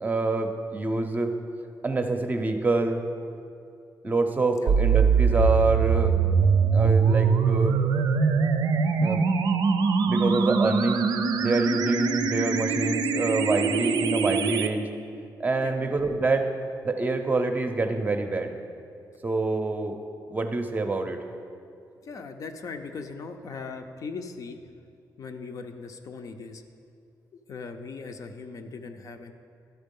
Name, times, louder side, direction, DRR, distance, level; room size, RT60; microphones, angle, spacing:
voice 1, 0.0-1.3 1.8-3.0 4.0-6.2 6.7-7.8 9.0-9.3 10.0-11.1 11.4-14.9 15.4-16.5 16.8-18.5 19.2-20.0 20.3-21.2, right 3 dB, 25° right, 5 dB, 0.6 m, -26 dB
sound 1, 4.7-14.7, right 5 dB, 80° right, 0.5 m, -23 dB
voice 2, 22.0-24.6 25.2-26.6 27.5-29.3, left 4 dB, 55° left, 6 dB, 0.5 m, -39 dB
12.5 x 4.5 x 5.3 m, 2.4 s
wide cardioid pair, 135°, 7 cm